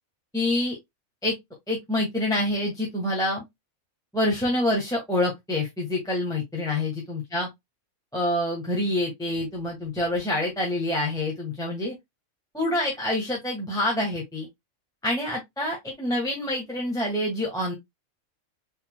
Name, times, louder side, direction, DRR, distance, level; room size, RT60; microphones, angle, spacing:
voice 1, 0.3-0.8 1.2-1.3 1.7-3.4 4.1-7.5 8.1-11.9 12.5-14.5 15.0-17.7, left 1 dB, 5° left, 1.4 m, -26 dB
4.1 x 4.1 x 2.2 m
omnidirectional pair, 1.5 m